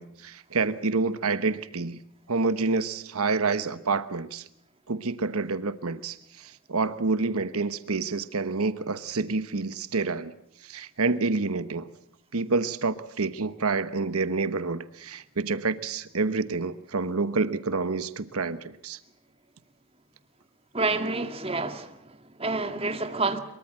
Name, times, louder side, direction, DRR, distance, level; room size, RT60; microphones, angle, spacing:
voice 1, 0.0-2.0 2.3-4.5 4.9-10.3 10.6-11.9 12.3-19.0, right 3 dB, 90° right, 1.1 m, -28 dB
voice 2, 20.7-23.4, right 3 dB, 25° right, 1.9 m, -29 dB
23.5 x 22.5 x 7.6 m
head